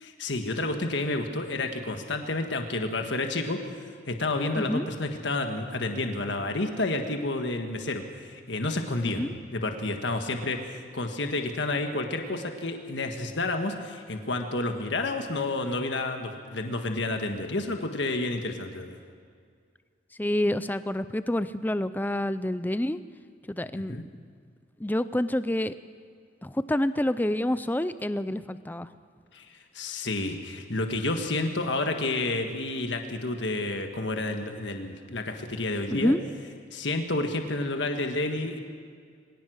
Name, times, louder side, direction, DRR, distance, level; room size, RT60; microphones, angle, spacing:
voice 1, 0.0-3.6 4.1-9.2 9.5-19.0 23.7-24.0 29.3-36.1 36.7-38.6, left 2 dB, 70° left, 5 dB, 1.6 m, -30 dB
voice 2, 4.6-4.9 9.0-9.3 20.2-23.0 23.5-23.9 24.8-25.7 26.4-28.9 35.9-36.2, left 1 dB, 10° left, 13 dB, 0.4 m, -28 dB
23.5 x 18.0 x 6.4 m, 2.1 s
head